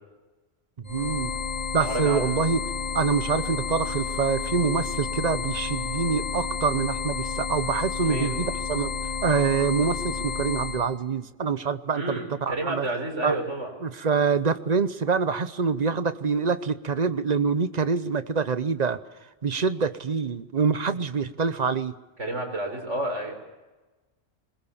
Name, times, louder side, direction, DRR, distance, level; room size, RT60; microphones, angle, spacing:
sound 1, 0.8-10.8, left 5 dB, 25° left, 3.5 m, -31 dB
voice 1, 0.9-1.3 1.7-2.6 2.9-8.9 9.2-12.9 13.2-13.3 13.8-19.0 19.4-21.9, right 5 dB, 40° right, 12 dB, 0.9 m, -25 dB
voice 2, 1.8-2.2 8.0-8.3 11.9-13.7 22.2-23.4, right 1 dB, 85° right, 2 dB, 4.8 m, -30 dB
21.5 x 20.5 x 7.1 m, 1.2 s
omnidirectional pair, 1.2 m